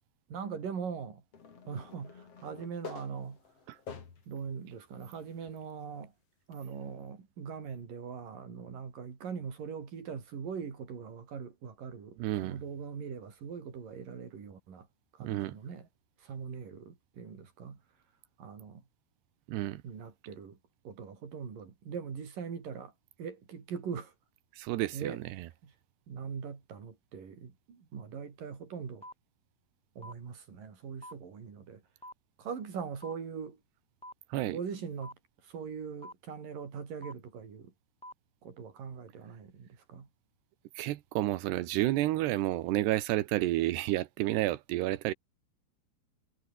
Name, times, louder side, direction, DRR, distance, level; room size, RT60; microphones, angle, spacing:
voice 1, 0.3-1.2 1.7-3.4 4.3-6.1 6.5-14.9 15.2-15.9 16.2-17.8 18.4-18.8 19.8-20.6 20.8-22.9 23.2-24.1 24.9-25.2 25.6-25.7 26.1-29.0 30.0-31.8 32.4-33.6 34.5-35.2 35.4-37.7 38.4-40.1, right 6 dB, 55° right, 5.6 m, -41 dB
sound 1, 1.3-4.4 5.0-5.1 6.5-6.6, left 6 dB, 40° left, 3.8 m, -48 dB
voice 2, 12.2-12.6 15.2-15.5 19.5-19.8 24.5-25.5 34.3-34.6 40.7-45.1, right 16 dB, 90° right, 3.2 m, -30 dB
sound 2, 29.0-29.1 30.0-30.1 31.0-31.1 32.0-32.1 33.0-33.1 34.0-34.1 35.0-35.1 36.0-36.1 37.0-37.1 38.0-38.1, equal, 10° left, 0.3 m, -45 dB
omnidirectional pair, 4.6 m